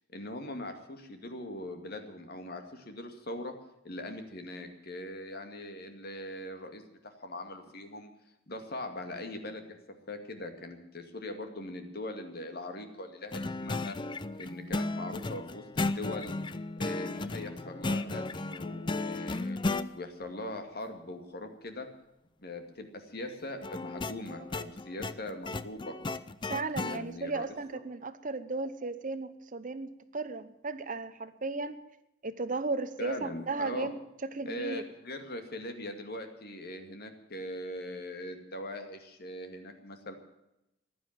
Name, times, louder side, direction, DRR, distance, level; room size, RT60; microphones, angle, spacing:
voice 1, 0.1-3.5 3.8-8.1 8.5-9.8 10.1-14.0 14.4-16.4 16.8-19.6 19.9-21.9 22.4-25.9 26.8-27.5 27.7-27.8 33.0-33.9 34.5-40.1, left 1 dB, 50° left, 6 dB, 2.2 m, -41 dB
sound 1, 13.3-19.9 23.6-27.0, left 2 dB, 25° left, 0.5 m, -35 dB
voice 2, 26.5-31.8 32.2-34.0 34.2-34.8, right 3 dB, 40° right, 12 dB, 0.9 m, -35 dB
15.5 x 11.0 x 7.4 m, 0.88 s
head